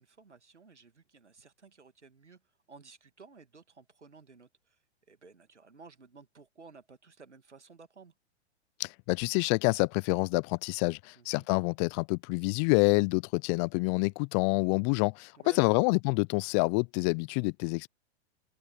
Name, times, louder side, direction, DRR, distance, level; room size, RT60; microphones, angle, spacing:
voice 1, 0.0-2.4 2.7-4.5 5.1-8.1 11.2-11.5 15.4-15.9, right 4 dB, 90° right, 2.3 m, -54 dB
voice 2, 8.8-17.9, left 34 dB, 25° left, 0.4 m, -27 dB
open air
figure-of-eight pair, 105°, 34 cm